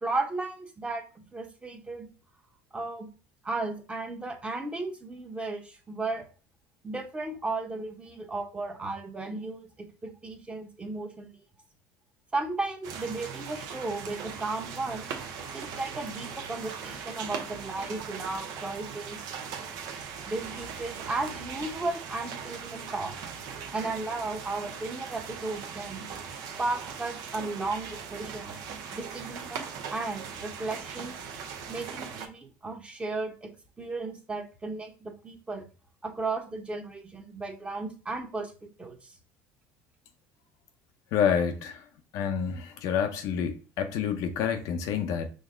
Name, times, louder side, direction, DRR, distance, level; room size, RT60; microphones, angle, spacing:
voice 1, 0.0-2.1 2.7-3.1 3.4-6.3 6.8-11.4 12.3-15.1 15.5-19.2 20.2-23.1 23.7-26.1 26.6-28.6 28.9-31.2 31.7-33.5 33.8-35.6 36.0-39.1, right 3 dB, 15° right, 0.9 m, -35 dB
sound 1, 12.8-32.3, right 6 dB, 70° right, 0.8 m, -40 dB
voice 2, 41.1-41.8 42.1-45.3, left 7 dB, 70° left, 0.7 m, -28 dB
5.1 x 2.1 x 3.7 m
supercardioid pair, 95°, 6 cm